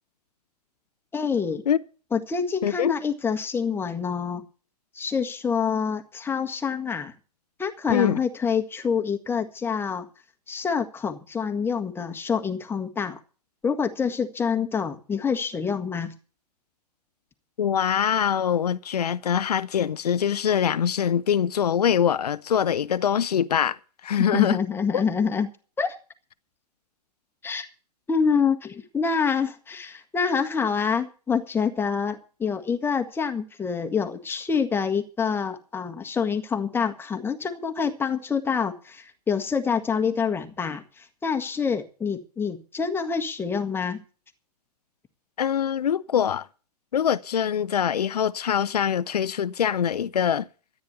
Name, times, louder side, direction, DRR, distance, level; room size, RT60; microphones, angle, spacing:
voice 1, 1.1-1.6 2.1-4.5 4.9-7.1 7.6-10.1 10.5-13.2 13.6-16.1 24.3-25.5 25.8-26.0 27.4-27.7 28.1-44.0, left 6 dB, 10° left, 1.5 m, -26 dB
voice 2, 2.6-2.9 7.9-8.2 17.6-23.8 24.0-24.6 24.9-25.0 45.4-46.5 46.9-50.5, left 8 dB, 70° left, 0.7 m, -23 dB
13.5 x 9.5 x 6.9 m
figure-of-eight pair, 110°, 21 cm